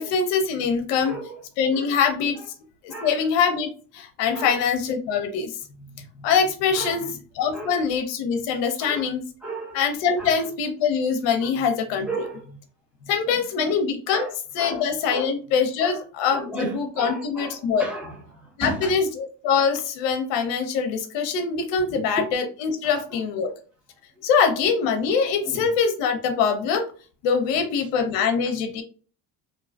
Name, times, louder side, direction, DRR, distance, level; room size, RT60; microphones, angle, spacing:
voice 1, 0.0-1.1 1.6-2.4 2.8-5.5 6.0-7.0 7.4-9.2 9.7-12.1 13.1-14.3 14.5-17.8 18.6-23.5 24.2-26.8 27.2-28.8, left 6 dB, 70° left, 0.6 m, -23 dB
voice 2, 1.0-1.4 1.7-2.0 2.3-2.4 2.9-3.2 4.3-5.0 6.7-7.1 7.5-7.8 8.8-9.1 9.4-9.8 10.2-10.5 11.4-11.7 12.1-12.5 13.3-13.8 14.1-15.3 15.8-16.0 16.3-18.9 21.9-22.2 22.8-23.2 24.2-24.3 25.4-25.7 27.5-27.6, right 2 dB, ahead, 0.7 m, -35 dB
2.5 x 2.3 x 2.3 m
hypercardioid pair, 65°, 46 cm